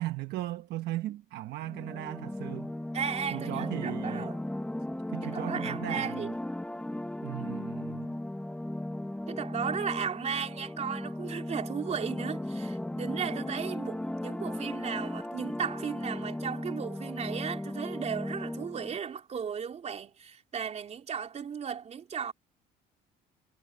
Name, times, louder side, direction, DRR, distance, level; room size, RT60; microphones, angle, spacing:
voice 1, 0.0-2.7 3.3-4.3 5.1-6.3 7.2-8.2, right 16 dB, 80° right, 1.1 m, -37 dB
sound 1, 1.6-19.0, left 1 dB, 5° left, 1.0 m, -36 dB
voice 2, 2.9-4.4 5.2-6.3 9.3-22.3, right 7 dB, 40° right, 3.6 m, -35 dB
cardioid pair, 110°, 17 cm